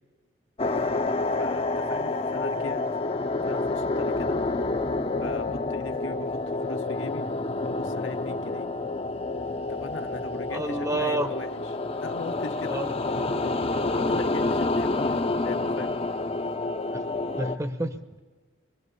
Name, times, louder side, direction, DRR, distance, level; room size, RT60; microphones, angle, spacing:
sound 1, 0.6-17.6, left 2 dB, 30° left, 0.7 m, -28 dB
voice 1, 1.3-2.8 3.4-4.4 5.1-7.3 7.6-8.7 9.7-16.0, left 3 dB, 80° left, 5 dB, 1.2 m, -39 dB
voice 2, 10.5-11.3 12.7-12.9 17.4-18.2, right 1 dB, 15° right, 10 dB, 0.8 m, -29 dB
24.5 x 21.5 x 6.8 m, 1.4 s
head